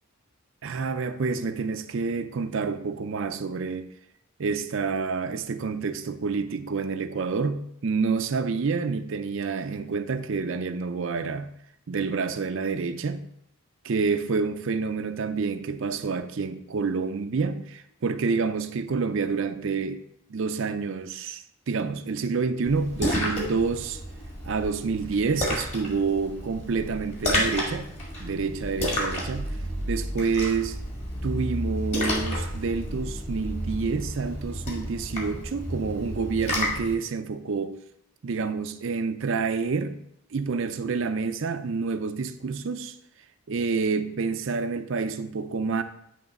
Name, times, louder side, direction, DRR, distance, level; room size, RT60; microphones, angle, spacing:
voice 1, 0.6-3.9 4.4-11.5 11.9-13.2 13.8-20.0 20.3-24.0 24.4-27.9 28.2-30.8 31.2-37.8 38.2-40.0 40.3-43.0 43.5-45.8, right 4 dB, 60° right, 0.5 m, -28 dB
Splash splatter, 22.7-36.9, equal, 30° left, 1.7 m, -31 dB
9.4 x 3.2 x 5.2 m
head